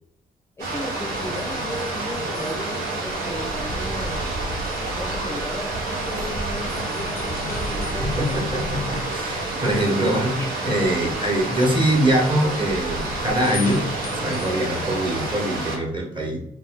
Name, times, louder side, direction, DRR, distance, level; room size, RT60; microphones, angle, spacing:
voice 1, 0.6-4.3 4.5-9.0 10.4-10.6 11.0-11.2 14.5-14.7, left 1 dB, 15° left, 1 dB, 0.5 m, -35 dB
sound 1, 0.6-15.8, right 2 dB, 80° right, 0.8 m, -28 dB
sound 2, 1.0-15.4, left 4 dB, 85° left, 0.5 m, -41 dB
voice 2, 8.2-13.8 14.2-16.5, right 1 dB, 30° right, 1 dB, 1.0 m, -23 dB
2.6 x 2.2 x 3.5 m, 0.71 s
supercardioid pair, 65°, 16 cm